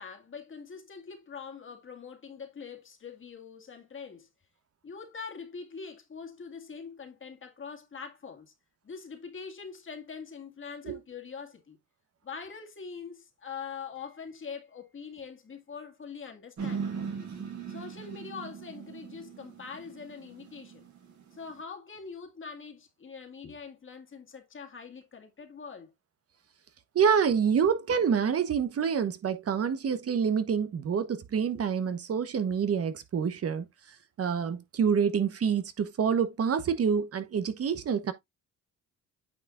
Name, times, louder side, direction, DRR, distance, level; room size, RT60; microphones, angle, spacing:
voice 1, 0.0-4.3 4.8-8.5 8.8-11.8 12.2-16.9 17.7-20.9 21.3-25.9, left 5 dB, 40° left, 2.1 m, -43 dB
sound 1, 16.6-21.6, right 6 dB, 70° right, 4.6 m, -39 dB
voice 2, 26.9-33.7 34.2-38.1, right 7 dB, 50° right, 1.2 m, -27 dB
9.1 x 5.8 x 2.5 m
cardioid pair, 90°, 30 cm